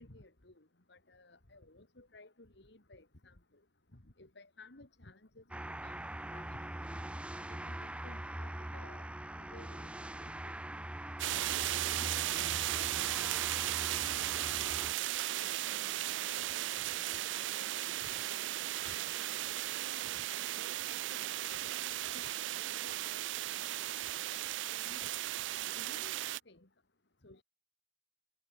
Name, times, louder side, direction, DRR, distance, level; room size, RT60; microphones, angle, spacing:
voice 1, 0.0-3.4 3.9-6.0 6.3-6.6 7.5-9.1 9.4-9.9 10.2-10.3 11.3-12.7 13.0-13.8 14.2-14.3 14.6-14.7 15.3-18.4 18.8-19.2 19.5-19.8 20.9-22.3 22.6-23.0 23.6-23.9 24.6-25.2 25.5-26.2 26.5-26.7 27.2-27.4, left 2 dB, 70° left, 2.8 m, -57 dB
sound 1, 5.5-15.0, right 1 dB, 5° right, 0.5 m, -43 dB
sound 2, 10.3-20.0, equal, 25° left, 6.6 m, -77 dB
sound 3, 11.2-26.4, right 14 dB, 90° right, 0.4 m, -36 dB
head